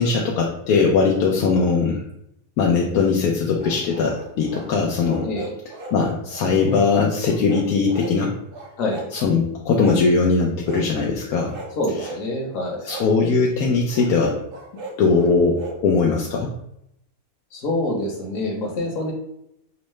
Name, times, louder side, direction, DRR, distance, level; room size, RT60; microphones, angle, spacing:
voice 1, 0.0-2.0 2.6-5.3 5.9-8.3 9.1-11.5 12.9-14.4 15.0-16.5, left 4 dB, 80° left, -1 dB, 1.1 m, -20 dB
sound 1, 3.6-4.7 5.1-6.0 6.3-6.9 7.2-8.2 8.5-9.3 9.8-10.1 10.6-10.9 11.4-12.2 12.9-13.1 13.9-15.8, right 2 dB, 55° right, 0.7 m, -37 dB
voice 2, 11.8-12.9 17.5-19.1, left 1 dB, 65° left, 0 dB, 1.4 m, -26 dB
5.5 x 2.0 x 3.1 m, 0.77 s
omnidirectional pair, 1.5 m